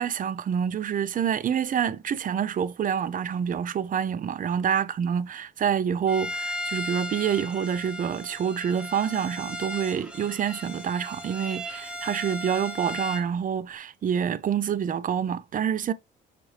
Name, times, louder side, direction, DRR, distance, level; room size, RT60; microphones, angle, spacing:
voice 1, 0.0-15.9, right 8 dB, 45° right, 0.5 m, -27 dB
Bowed string instrument, 6.1-13.3, equal, 5° right, 0.8 m, -36 dB
6.2 x 2.5 x 3.2 m
cardioid pair, 90°, 20 cm